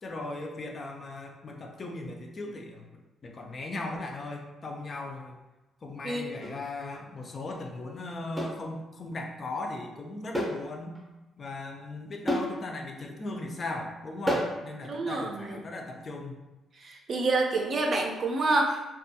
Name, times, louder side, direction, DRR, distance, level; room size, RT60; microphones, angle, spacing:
voice 1, 0.0-2.9 3.2-5.4 5.8-11.0 11.4-16.4, left 2 dB, 40° left, 2 dB, 0.4 m, -38 dB
sound 1, 6.4-6.6 8.4-8.6 10.3-10.6 11.0-11.1 12.3-12.6 14.3-14.6, equal, 10° right, 0.7 m, -29 dB
voice 2, 14.8-15.6 16.8-19.0, right 2 dB, 50° right, 1 dB, 0.5 m, -28 dB
2.6 x 2.3 x 2.7 m, 1.0 s
cardioid pair, 90°, 0 cm